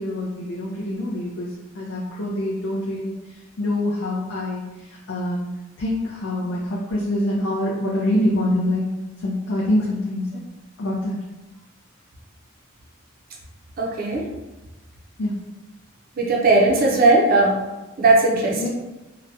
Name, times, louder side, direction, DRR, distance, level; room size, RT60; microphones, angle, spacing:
voice 1, 0.0-5.5 5.8-8.9 9.2-10.3 10.8-11.2 15.2-15.3 18.6-18.7, left 1 dB, 70° left, -5 dB, 0.4 m, -25 dB
voice 2, 13.8-14.2 16.2-17.6 18.0-18.7, right 2 dB, 45° right, -2 dB, 0.5 m, -17 dB
2.8 x 2.2 x 2.5 m, 1.1 s
head